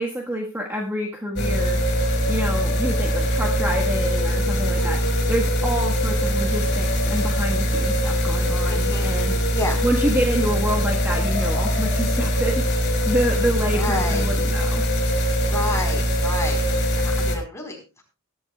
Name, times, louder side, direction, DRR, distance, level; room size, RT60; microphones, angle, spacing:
voice 1, 0.0-1.8 2.3-9.4 9.8-14.8, right 1 dB, 10° right, -2 dB, 1.5 m, -27 dB
sound 1, 1.4-17.4, equal, 50° left, 4.7 m, -22 dB
voice 2, 4.8-5.1 8.7-9.1 9.5-9.8 13.7-14.3 15.4-18.0, left 2 dB, 15° left, 1 dB, 4.3 m, -31 dB
21.5 x 11.0 x 2.4 m, 0.30 s
head